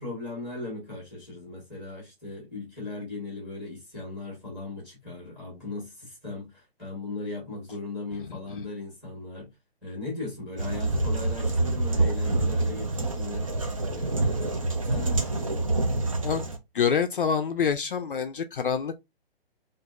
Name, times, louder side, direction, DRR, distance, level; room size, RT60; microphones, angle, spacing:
voice 1, 0.0-9.5 9.8-13.5 13.8-15.7, left 2 dB, ahead, 1.2 m, -38 dB
sound 1, 10.6-16.6, right 2 dB, 35° right, 0.5 m, -27 dB
voice 2, 16.7-19.0, left 6 dB, 60° left, 0.5 m, -26 dB
4.6 x 2.5 x 2.4 m
hypercardioid pair, 180°, 31 cm